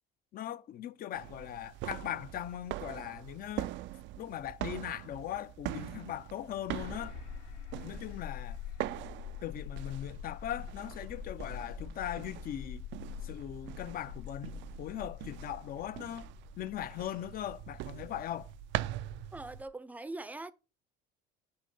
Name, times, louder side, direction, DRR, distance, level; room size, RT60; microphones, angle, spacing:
voice 1, 0.3-3.7 4.2-7.2 7.8-8.6 9.4-12.8 13.2-16.3 16.6-18.5, left 11 dB, 45° left, 0.5 m, -39 dB
sound 1, 1.2-19.7, right 15 dB, 60° right, 0.4 m, -43 dB
sound 2, 6.7-19.7, left 8 dB, 65° left, 2.1 m, -46 dB
voice 2, 19.3-20.5, right 2 dB, 5° right, 0.5 m, -42 dB
7.9 x 3.2 x 5.3 m
supercardioid pair, 100°, 21 cm